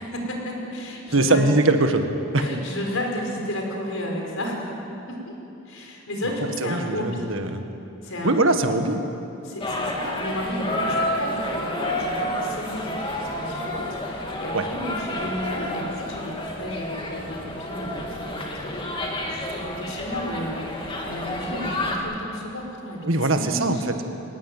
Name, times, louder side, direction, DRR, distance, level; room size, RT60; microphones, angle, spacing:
voice 1, 0.0-1.5 2.4-4.8 5.1-5.2 5.7-7.3 8.0-8.3 9.4-23.8, left 1 dB, 75° left, 1 dB, 5.2 m, -32 dB
voice 2, 1.1-2.5 6.6-7.6 8.2-9.0 14.5-14.6 23.0-23.8, right 2 dB, 65° right, 6 dB, 1.8 m, -21 dB
sound 1, 9.6-22.0, left 1 dB, 25° left, 2.8 m, -30 dB
22.5 x 20.0 x 9.3 m, 2.8 s
head